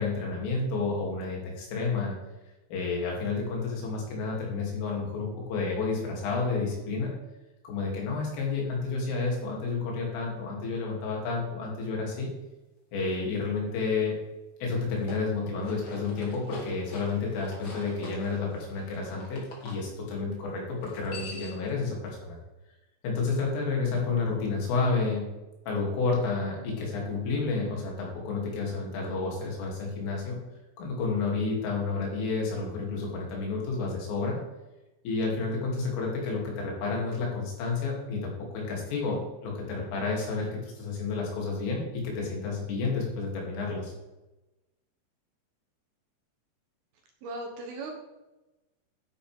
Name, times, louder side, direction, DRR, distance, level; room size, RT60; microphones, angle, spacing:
voice 1, 0.0-2.2 2.7-7.1 7.6-12.3 12.9-14.1 14.6-22.4 23.0-25.3 25.7-30.4 30.8-34.4 35.1-43.9, left 4 dB, 85° left, -2 dB, 5.5 m, -30 dB
sound 1, 14.9-19.8 20.8-21.7, left 2 dB, 40° left, 1.9 m, -45 dB
voice 2, 47.2-47.9, right 2 dB, 70° right, 2 dB, 2.6 m, -37 dB
12.5 x 10.0 x 3.6 m, 1.0 s
omnidirectional pair, 5.6 m